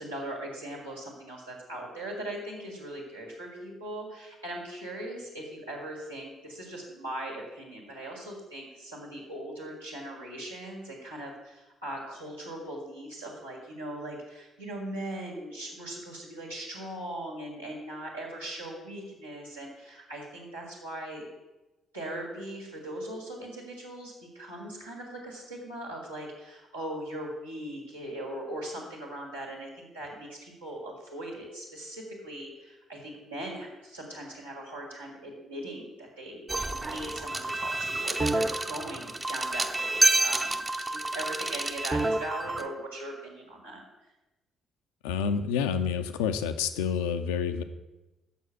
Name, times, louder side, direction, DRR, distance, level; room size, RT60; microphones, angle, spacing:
voice 1, 0.0-21.3 21.9-36.5 36.8-43.8, right 1 dB, 85° right, -5 dB, 2.1 m, -39 dB
sound 1, 36.5-42.7, right 2 dB, 20° right, 0.7 m, -28 dB
voice 2, 45.0-47.6, left 7 dB, 70° left, 9 dB, 0.5 m, -28 dB
6.9 x 6.3 x 7.5 m, 1.0 s
figure-of-eight pair, 45°, 0 cm